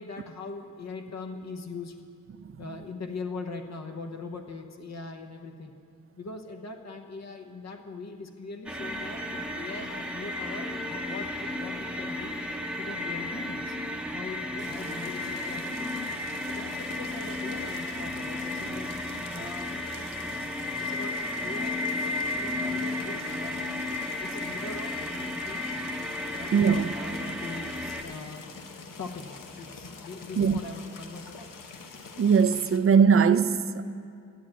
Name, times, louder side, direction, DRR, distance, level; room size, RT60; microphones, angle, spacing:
voice 1, 0.0-2.1 2.6-5.7 6.2-12.4 12.8-13.8 14.1-15.9 16.4-18.9 19.3-19.8 20.8-23.8 24.2-25.8 26.3-28.4 29.0-31.6, left 3 dB, 55° left, 0.9 m, -41 dB
sound 1, 8.7-28.0, left 2 dB, 5° right, 0.8 m, -33 dB
sound 2, 14.6-32.8, left 4 dB, 85° left, 1.0 m, -45 dB
voice 2, 26.5-27.0 30.4-30.6 32.2-33.8, right 6 dB, 45° right, 0.5 m, -21 dB
11.0 x 7.5 x 8.9 m
wide cardioid pair, 130°, 32 cm